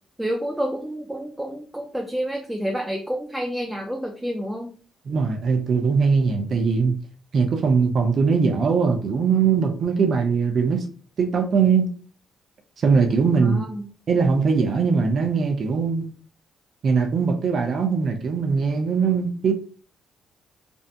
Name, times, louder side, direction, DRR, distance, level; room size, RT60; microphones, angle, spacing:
voice 1, 0.2-4.7 13.4-13.8, equal, 5° right, 0.4 m, -29 dB
voice 2, 5.1-6.9 7.3-10.8 11.2-11.9 12.8-13.6 14.1-16.1 16.8-19.5, right 5 dB, 55° right, 0.6 m, -21 dB
2.6 x 2.1 x 2.6 m
cardioid pair, 90°, 0 cm